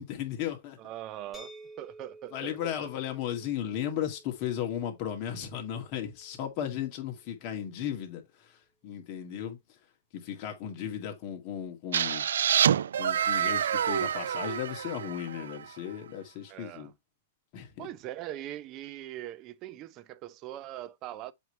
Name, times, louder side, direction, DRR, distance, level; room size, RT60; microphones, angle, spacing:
voice 1, 0.0-0.8 2.3-8.6 8.8-9.6 10.1-12.2 13.0-16.9 17.5-17.9, left 10 dB, 40° left, 2.2 m, -35 dB
voice 2, 0.8-2.9 16.5-16.9 17.8-21.3, right 13 dB, 30° right, 0.6 m, -41 dB
sound 1, 1.3-7.1, right 2 dB, 5° left, 1.7 m, -53 dB
sound 2, 11.9-15.7, right 9 dB, 85° right, 0.3 m, -27 dB
7.8 x 3.3 x 4.5 m
hypercardioid pair, 145°, 0 cm